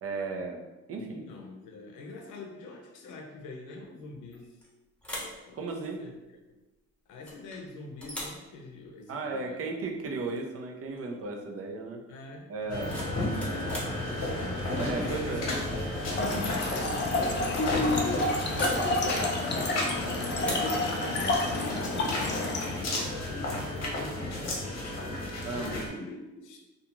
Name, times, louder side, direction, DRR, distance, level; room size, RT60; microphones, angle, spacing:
voice 1, 0.0-0.6 0.9-1.2 5.5-6.0 9.1-12.0 12.5-13.0 14.7-15.5 20.5-20.8 25.4-25.8, right 3 dB, 50° right, 2 dB, 0.5 m, -35 dB
voice 2, 1.0-4.6 5.5-5.6 6.0-6.1 7.1-9.6 10.1-10.2 12.1-14.5 15.1-17.4 18.0-20.1 20.4-24.9 25.2-26.6, left 3 dB, 90° left, 2 dB, 0.6 m, -44 dB
sound 1, 4.3-4.7 5.0-5.4 7.3-7.6 8.0-8.4 10.3-10.5 10.8-11.1 12.6-14.0 15.5-15.8 16.2-16.5 16.8-16.9 18.5-18.9 20.4-20.8, equal, 5° left, 0.8 m, -39 dB
sound 2, 12.7-25.9, left 1 dB, 55° left, 0.9 m, -32 dB
Trickle dribble / Fill (with liquid), 16.1-22.7, left 2 dB, 35° left, 0.5 m, -30 dB
2.4 x 2.4 x 2.9 m, 1.1 s
cardioid pair, 90°, 30 cm